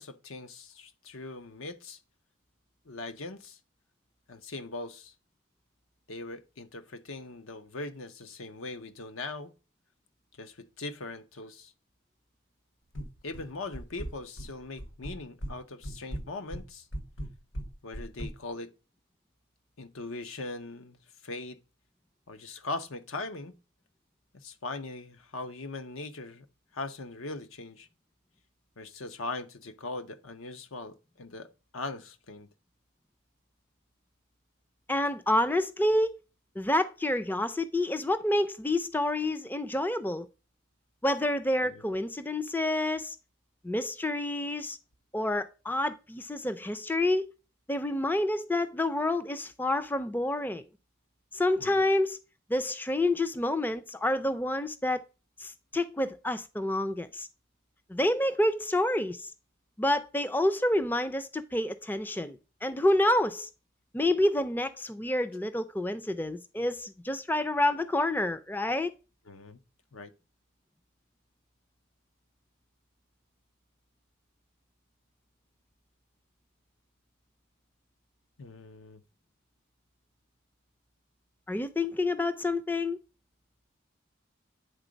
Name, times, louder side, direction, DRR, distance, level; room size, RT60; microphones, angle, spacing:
voice 1, 0.0-2.0 2.9-3.6 4.3-5.1 6.1-9.5 10.4-11.7 13.2-16.9 17.8-18.7 19.8-21.6 22.3-23.6 24.4-26.5 26.7-27.9 28.8-31.5 31.7-32.5 41.6-41.8 51.6-51.8 69.3-69.6 69.9-70.1 78.4-79.0, left 3 dB, 85° left, 0.8 m, -40 dB
sound 1, 12.9-13.5 13.7-14.5 14.8-15.6 15.8-18.3, equal, 70° left, 1.3 m, -37 dB
voice 2, 34.9-36.1 36.6-40.3 41.0-43.2 43.6-44.8 45.1-47.3 47.7-50.6 51.3-52.2 52.5-55.0 55.4-57.3 57.9-59.3 59.8-63.5 63.9-68.9 81.5-83.0, left 1 dB, 10° left, 0.3 m, -28 dB
9.1 x 3.8 x 5.1 m
head